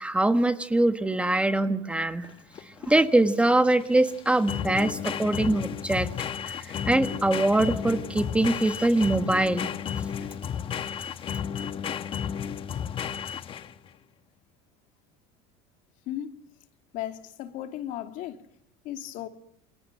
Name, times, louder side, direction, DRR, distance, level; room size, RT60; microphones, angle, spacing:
voice 1, 0.0-2.3 2.8-6.1 6.5-9.7, right 2 dB, 10° right, 1.4 m, -23 dB
sound 1, 2.2-13.9, left 8 dB, 35° left, 1.3 m, -33 dB
voice 2, 16.1-16.4 16.9-18.4 18.8-19.3, left 12 dB, 60° left, 2.6 m, -35 dB
28.5 x 23.0 x 7.7 m
supercardioid pair, 125°, 15 cm